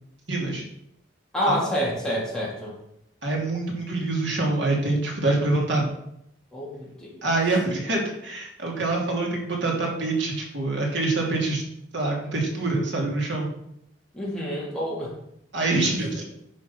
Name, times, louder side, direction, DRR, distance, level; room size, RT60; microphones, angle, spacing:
voice 1, 0.3-0.6 1.5-1.6 3.2-5.9 7.2-11.6 11.9-13.5 15.5-16.2, right 2 dB, 80° right, -1 dB, 3.1 m, -25 dB
voice 2, 1.3-2.7 6.5-7.3 14.1-15.1, equal, 5° left, -6 dB, 3.7 m, -28 dB
10.5 x 6.6 x 5.8 m, 0.75 s
head